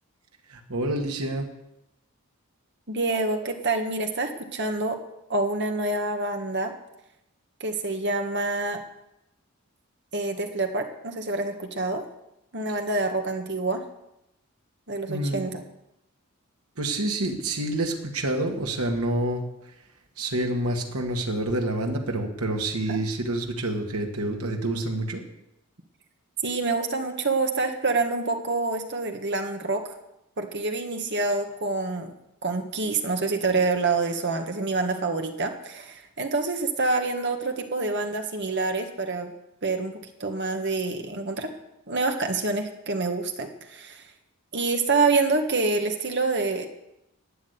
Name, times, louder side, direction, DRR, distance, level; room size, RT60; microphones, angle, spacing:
voice 1, 0.5-1.5 15.1-15.5 16.8-19.4 20.2-25.2, right 1 dB, 75° right, 2 dB, 2.0 m, -28 dB
voice 2, 2.9-5.0 5.3-6.7 7.6-8.8 10.1-12.0 12.5-13.8 14.9-15.6 22.9-23.0 26.4-29.9 30.4-32.1 32.4-39.3 39.6-41.5 41.9-44.0 44.5-46.7, right 3 dB, 50° right, 5 dB, 1.7 m, -27 dB
12.5 x 8.4 x 9.6 m, 0.88 s
head